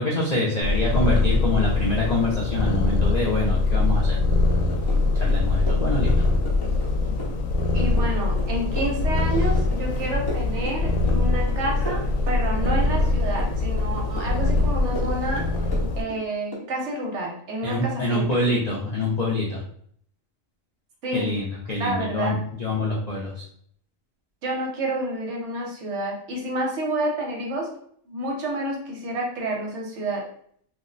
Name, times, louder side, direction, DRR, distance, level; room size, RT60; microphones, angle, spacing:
voice 1, 0.0-4.2 5.1-6.2 17.6-19.6 21.1-23.4, left 1 dB, 55° left, -5 dB, 0.4 m, -25 dB
Purr, 0.6-16.0, left 2 dB, 80° left, 1.0 m, -23 dB
sound 1, 4.5-5.0 5.3-6.9 7.2-10.0 10.3-11.2 11.5-13.1 13.4-14.3 14.6-16.2 16.5-16.7, right 1 dB, 20° left, 0.8 m, -37 dB
voice 2, 7.7-18.3 21.0-21.3 21.8-22.4 24.4-27.7 28.1-30.3, right 1 dB, 65° right, -1 dB, 1.1 m, -29 dB
2.6 x 2.1 x 3.8 m, 0.63 s
omnidirectional pair, 1.4 m